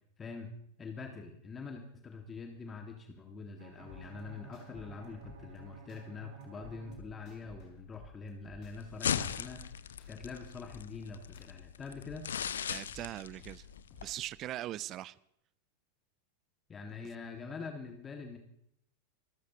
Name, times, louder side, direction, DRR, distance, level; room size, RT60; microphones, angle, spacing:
voice 1, 0.2-0.5 0.8-9.8 10.1-12.3 16.7-18.4, left 4 dB, 20° left, 1.9 m, -44 dB
Bowed string instrument, 3.6-7.7, right 6 dB, 55° right, 4.0 m, -54 dB
sound 1, 3.8-6.0 6.4-9.0 9.3-11.5 11.9-14.4, left 4 dB, 35° left, 5.6 m, -56 dB
sound 2, 8.6-14.1, left 8 dB, 65° left, 0.6 m, -38 dB
voice 2, 12.7-13.7 14.0-15.2, right 13 dB, 35° right, 0.5 m, -40 dB
26.0 x 14.0 x 2.9 m
figure-of-eight pair, 90°, 0 cm